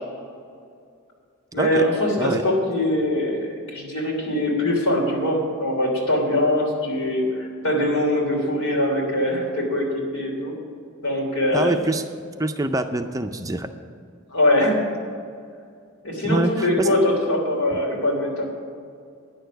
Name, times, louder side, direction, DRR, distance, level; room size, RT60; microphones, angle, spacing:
voice 1, 1.5-9.9 10.1-10.5 11.0-11.7 14.3-14.9 16.0-18.5, left 1 dB, 85° left, -1 dB, 3.2 m, -22 dB
voice 2, 11.5-12.0 12.4-13.7 16.2-16.9, right 2 dB, 15° right, 7 dB, 0.4 m, -24 dB
10.0 x 6.8 x 9.1 m, 2.3 s
head